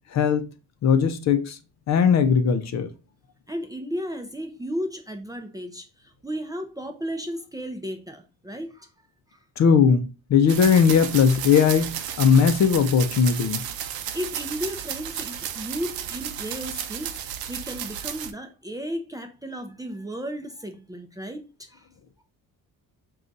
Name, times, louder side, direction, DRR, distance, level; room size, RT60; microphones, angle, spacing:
voice 1, 0.1-0.5 0.8-1.6 1.9-2.9 9.6-10.0 10.3-11.9 12.2-13.6, left 6 dB, 50° left, 0.5 m, -18 dB
voice 2, 3.5-8.9 14.1-21.4 21.7-21.9, equal, 10° right, 0.4 m, -34 dB
sound 1, 10.5-18.3, right 9 dB, 90° right, 0.5 m, -33 dB
3.8 x 2.4 x 3.8 m
cardioid pair, 120°, 35 cm